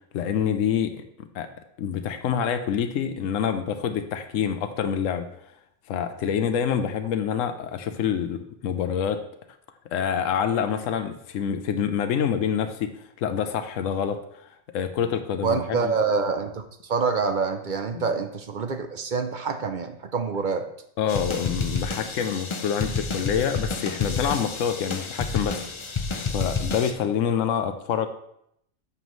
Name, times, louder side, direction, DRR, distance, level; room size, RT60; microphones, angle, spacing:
voice 1, 0.1-1.5 1.8-5.3 5.9-9.2 9.9-12.9 13.2-14.2 14.7-15.9 17.9-18.0 21.0-25.6 26.3-28.1, left 8 dB, 75° left, 8 dB, 1.0 m, -26 dB
voice 2, 15.4-20.7, right 5 dB, 50° right, 7 dB, 0.6 m, -26 dB
sound 1, 21.1-26.9, left 4 dB, 35° left, 0.5 m, -30 dB
9.2 x 7.0 x 3.1 m, 0.74 s
omnidirectional pair, 1.3 m